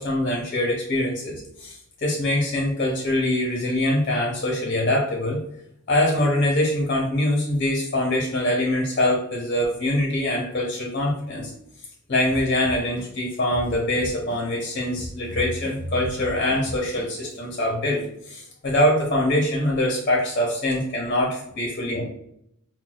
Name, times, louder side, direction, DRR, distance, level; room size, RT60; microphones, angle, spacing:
voice 1, 0.0-5.4 5.9-11.5 12.1-22.0, left 1 dB, 40° left, -2 dB, 0.8 m, -24 dB
sound 1, 12.3-14.7 15.0-17.3, equal, 20° right, 1.1 m, -37 dB
5.7 x 2.3 x 2.3 m, 0.75 s
head